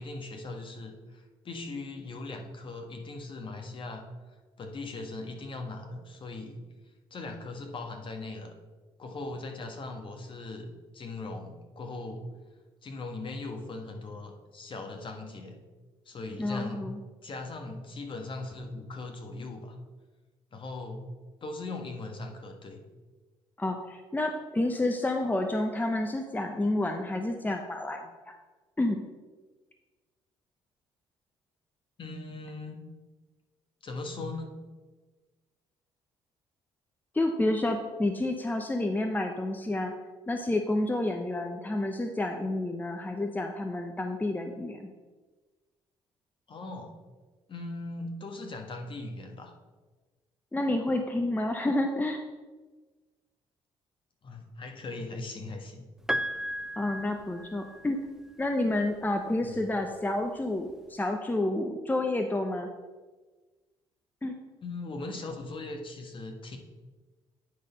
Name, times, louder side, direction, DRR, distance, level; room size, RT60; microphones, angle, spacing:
voice 1, 0.0-4.0 4.6-6.6 7.1-8.5 9.0-12.3 12.8-15.6 16.0-16.8 17.2-19.8 20.5-21.0 21.4-22.8 32.0-32.9 33.8-34.6 46.5-47.0 47.5-49.5 54.2-55.9 59.4-59.6 64.6-66.6, left 2 dB, 45° left, 4 dB, 1.5 m, -39 dB
voice 2, 16.4-17.0 23.6-28.4 28.8-29.0 37.1-39.9 40.3-44.9 50.5-52.2 56.8-58.0 58.4-62.7 64.2-64.4, left 1 dB, 15° left, 4 dB, 0.8 m, -29 dB
Piano, 56.1-58.1 59.4-59.5, equal, 5° right, 0.4 m, -34 dB
9.5 x 4.0 x 5.3 m, 1.3 s
hypercardioid pair, 60°, 12 cm